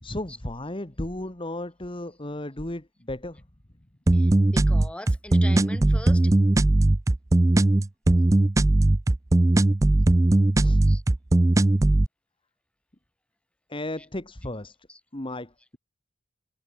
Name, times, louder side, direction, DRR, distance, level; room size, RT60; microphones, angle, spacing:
voice 1, 0.0-3.4 10.6-10.8 13.7-14.8 15.1-15.8, left 1 dB, 25° left, 1.9 m, -34 dB
voice 2, 4.1-6.3 10.9-11.0 14.0-14.1 14.9-15.0, left 1 dB, 5° left, 7.8 m, -41 dB
sound 1, 4.1-12.1, right 2 dB, 15° right, 0.4 m, -19 dB
head